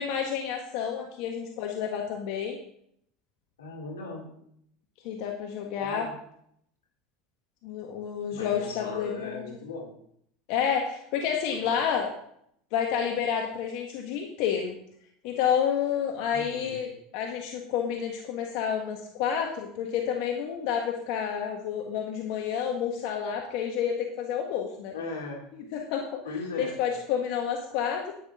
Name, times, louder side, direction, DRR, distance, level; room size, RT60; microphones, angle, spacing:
voice 1, 0.0-2.6 5.0-6.1 7.6-9.4 10.5-12.1 12.7-14.7 15.2-24.9 25.7-26.2 26.6-28.1, left 8 dB, 65° left, 2 dB, 1.5 m, -29 dB
voice 2, 3.6-4.3 5.8-6.1 8.3-9.9 11.5-12.0 16.3-16.8 24.9-25.4 26.2-26.8, left 3 dB, 90° left, 0 dB, 2.8 m, -38 dB
10.5 x 9.6 x 3.7 m, 0.69 s
hypercardioid pair, 85°, 0 cm